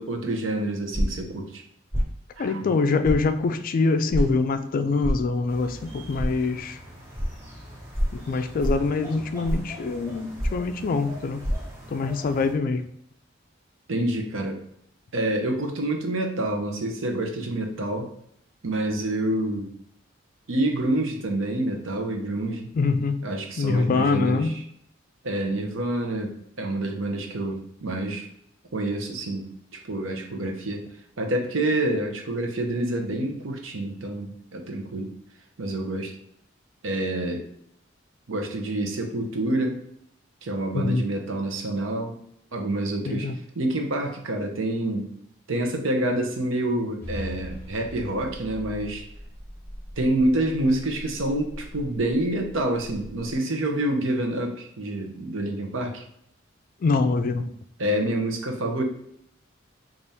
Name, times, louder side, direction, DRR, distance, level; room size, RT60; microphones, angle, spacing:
voice 1, 0.0-1.6 2.4-2.6 13.9-14.6 15.1-18.1 18.6-19.7 20.5-22.7 23.2-24.5 25.2-28.3 28.7-29.5 29.9-30.8 31.2-35.1 35.6-36.1 36.8-37.5 38.3-39.8 40.4-42.2 42.5-43.3 43.6-45.1 45.5-49.1 50.0-56.0 57.8-58.8, right 1 dB, 70° right, 3 dB, 0.7 m, -27 dB
sound 1, 0.9-1.3 1.9-2.1 3.0-3.2 4.1-4.3 5.0-5.2 6.2-6.3 7.1-7.3 7.9-8.2 8.6-8.9 9.4-9.7 10.4-10.7 11.4-11.5, equal, 30° right, 1.3 m, -25 dB
voice 2, 2.4-6.8 8.1-11.4 11.9-12.8 22.7-23.2 23.6-24.5 40.7-41.1 43.1-43.3 56.8-57.5, left 4 dB, 45° left, 9 dB, 0.3 m, -24 dB
sound 2, 5.5-12.5, equal, 15° right, 1.0 m, -44 dB
sound 3, 47.0-53.4, equal, 10° left, 1.0 m, -41 dB
3.5 x 2.5 x 4.0 m, 0.73 s
head